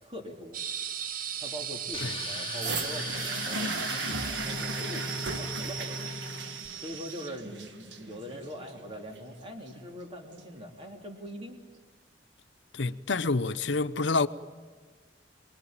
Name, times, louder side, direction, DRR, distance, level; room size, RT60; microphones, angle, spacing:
voice 1, 0.0-0.6 1.4-6.2 6.8-11.6, equal, 30° right, 3.2 m, -42 dB
sound 1, 0.5-7.3, right 8 dB, 50° right, 0.9 m, -38 dB
sound 2, 1.9-6.7, left 3 dB, 30° left, 2.1 m, -39 dB
sound 3, 2.6-10.6 11.4-11.5, right 3 dB, 75° right, 1.7 m, -37 dB
voice 2, 12.7-14.3, left 3 dB, 85° left, 0.9 m, -27 dB
24.5 x 22.5 x 8.9 m
head